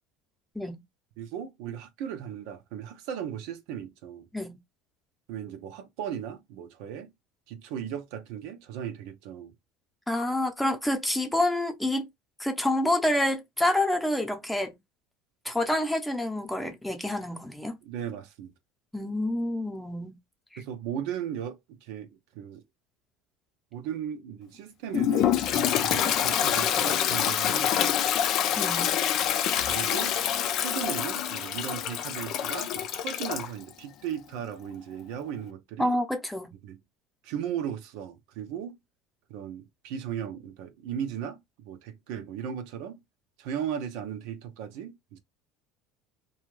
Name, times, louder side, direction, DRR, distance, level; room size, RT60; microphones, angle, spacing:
voice 1, 1.2-4.3 5.3-7.1 7.5-9.5 17.8-18.5 20.6-22.6 23.7-27.9 29.7-30.2 30.5-35.9 36.6-36.8 37.2-38.8 39.3-43.0 43.4-45.2, right 9 dB, 75° right, 0.6 m, -36 dB
voice 2, 10.1-12.1 12.4-14.8 15.4-17.8 18.9-20.2 20.5-20.6 28.6-28.9 35.8-36.5, left 1 dB, 5° left, 0.7 m, -28 dB
Toilet flush, 24.9-33.5, left 10 dB, 55° left, 0.4 m, -26 dB
2.4 x 2.3 x 3.1 m
supercardioid pair, 100°, 0 cm